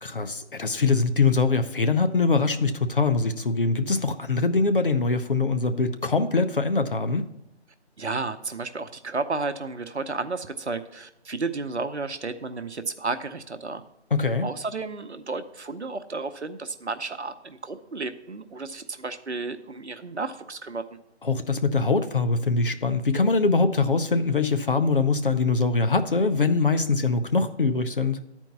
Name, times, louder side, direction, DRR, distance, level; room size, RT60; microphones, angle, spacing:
voice 1, 0.0-7.3 14.1-14.5 21.2-28.2, left 4 dB, 50° left, 9 dB, 0.7 m, -23 dB
voice 2, 8.0-13.8 14.4-20.8, right 3 dB, 70° right, 10 dB, 0.8 m, -32 dB
10.5 x 4.5 x 5.6 m, 0.88 s
figure-of-eight pair, 160°, 34 cm